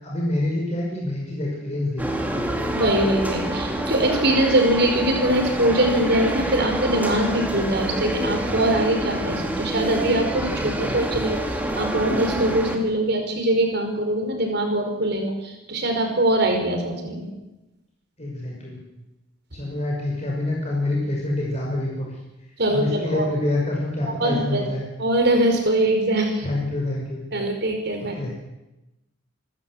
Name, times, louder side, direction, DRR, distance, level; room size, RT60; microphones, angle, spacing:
voice 1, 0.0-2.5 10.6-11.2 18.2-18.8 19.5-22.1 22.7-24.8 26.4-27.2 28.0-28.3, left 1 dB, 35° left, -2 dB, 5.9 m, -27 dB
sound 1, 2.0-12.8, right 1 dB, 10° right, 2.6 m, -27 dB
voice 2, 2.7-17.3 22.6-23.3 24.2-24.6 25.0-26.5 27.3-28.2, right 1 dB, 55° right, 4 dB, 5.1 m, -22 dB
27.5 x 13.5 x 8.0 m, 0.98 s
head